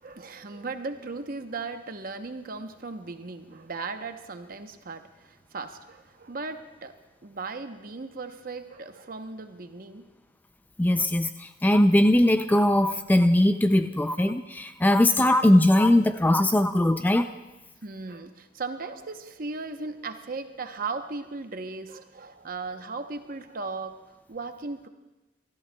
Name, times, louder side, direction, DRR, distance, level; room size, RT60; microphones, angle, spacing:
voice 1, 0.0-6.9 7.2-10.1 17.8-24.9, right 3 dB, 50° right, 7 dB, 0.8 m, -37 dB
voice 2, 10.8-17.3, left 1 dB, 10° left, 9 dB, 0.3 m, -20 dB
29.5 x 13.5 x 2.3 m, 1.1 s
head